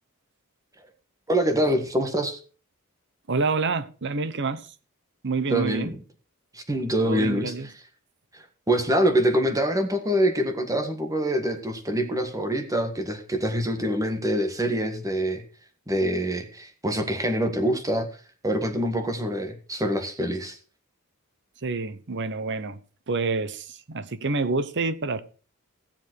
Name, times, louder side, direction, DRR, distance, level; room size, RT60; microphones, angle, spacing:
voice 1, 1.3-2.4 5.5-5.9 6.5-7.5 8.3-15.4 15.9-18.1 18.4-20.6, right 1 dB, 15° right, 1.7 m, -25 dB
voice 2, 3.3-4.7 5.2-5.9 7.0-7.7 21.6-22.8 23.1-25.2, right 3 dB, 55° right, 0.9 m, -27 dB
16.5 x 7.3 x 4.6 m
head